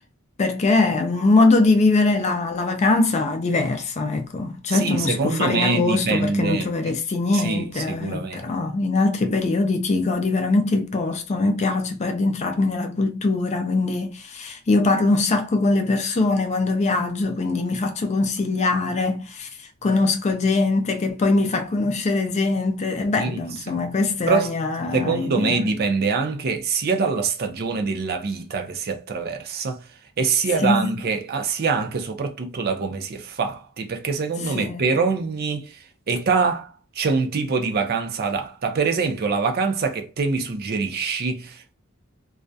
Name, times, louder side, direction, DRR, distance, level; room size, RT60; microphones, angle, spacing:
voice 1, 0.4-25.7 30.6-30.9 34.4-34.8, left 3 dB, 30° left, 0.4 m, -22 dB
voice 2, 4.7-6.9 7.3-8.5 9.2-9.3 23.2-23.4 23.7-23.8 24.3-24.5 24.9-29.8 30.2-35.8 36.1-41.7, right 4 dB, 45° right, 0.5 m, -24 dB
2.3 x 2.1 x 2.6 m
head